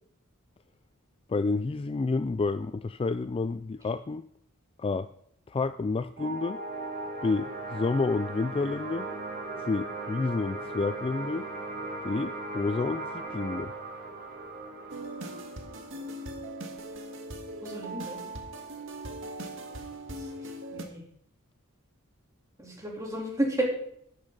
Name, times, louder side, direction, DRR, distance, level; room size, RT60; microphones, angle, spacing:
voice 1, 1.3-4.3 4.8-5.1 5.5-6.6 7.2-9.1 9.7-11.5 12.0-13.7, left 3 dB, 25° left, 12 dB, 0.3 m, -29 dB
sound 1, 6.2-17.2, right 2 dB, 45° right, 2.1 m, -38 dB
sound 2, 14.9-20.8, right 1 dB, 65° right, 1.7 m, -40 dB
voice 2, 17.6-18.2 20.2-21.0 22.6-23.6, right 1 dB, 15° right, -2 dB, 3.4 m, -33 dB
12.5 x 9.7 x 4.0 m, 0.68 s
head